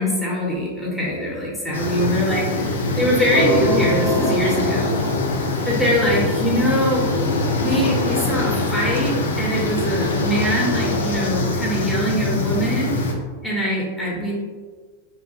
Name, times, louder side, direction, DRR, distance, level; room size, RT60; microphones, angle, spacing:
voice 1, 0.0-4.9 5.7-7.1 7.6-12.9 13.4-14.3, equal, ahead, -5 dB, 0.7 m, -22 dB
sound 1, 1.7-13.1, left 2 dB, 65° left, 0.4 m, -23 dB
sound 2, 3.3-6.3, right 1 dB, 70° right, 0.6 m, -27 dB
2.8 x 2.3 x 2.6 m, 1.5 s
figure-of-eight pair, 90°, 0 cm